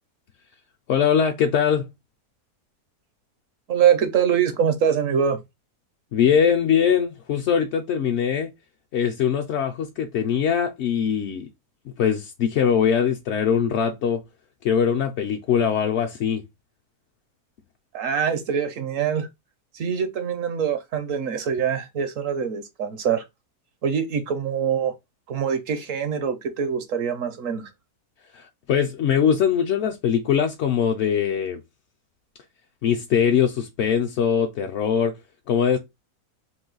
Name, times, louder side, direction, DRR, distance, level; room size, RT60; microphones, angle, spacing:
voice 1, 0.9-1.9 6.1-8.5 8.9-11.5 12.0-14.2 14.6-16.4 28.3-31.6 32.8-35.1 35.5-35.8, left 8 dB, 65° left, 0.7 m, -22 dB
voice 2, 3.7-5.4 17.9-19.3 19.7-23.2 23.8-24.9 25.3-27.7, right 7 dB, 65° right, 0.9 m, -24 dB
3.8 x 2.6 x 3.7 m
omnidirectional pair, 1.7 m